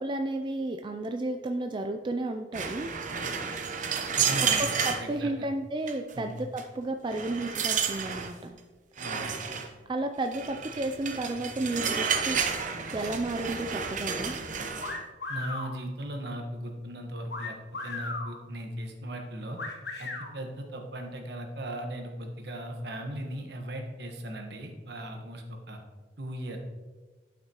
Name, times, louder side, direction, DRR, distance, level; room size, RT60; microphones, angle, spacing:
voice 1, 0.0-2.9 4.8-8.6 9.9-12.4 12.9-14.4, right 2 dB, 25° right, 5 dB, 0.4 m, -32 dB
sound 1, 2.5-5.1 5.9-6.1 6.6-6.7 7.1-8.3 9.0-9.7 10.3-15.0, right 6 dB, 45° right, 0.8 m, -31 dB
voice 2, 4.2-5.5 6.1-6.3 9.0-9.3 15.3-17.6 17.8-19.6 20.0-25.8 26.2-26.6, right 1 dB, 65° right, 3 dB, 1.2 m, -38 dB
sound 2, 14.8-15.7 17.3-18.3 19.6-20.3, left 3 dB, 70° left, 1.4 m, -36 dB
11.5 x 5.9 x 3.0 m, 1.3 s
head